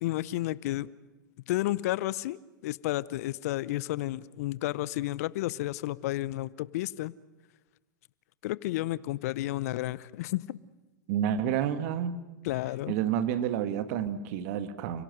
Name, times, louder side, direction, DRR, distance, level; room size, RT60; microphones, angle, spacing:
voice 1, 0.0-0.9 1.5-7.1 8.4-10.6 12.4-12.9, left 16 dB, 50° left, 20 dB, 0.7 m, -31 dB
voice 2, 11.1-12.2 12.9-15.0, right 9 dB, 50° right, 12 dB, 1.7 m, -29 dB
29.5 x 17.0 x 7.8 m, 1.1 s
figure-of-eight pair, 105°, 10 cm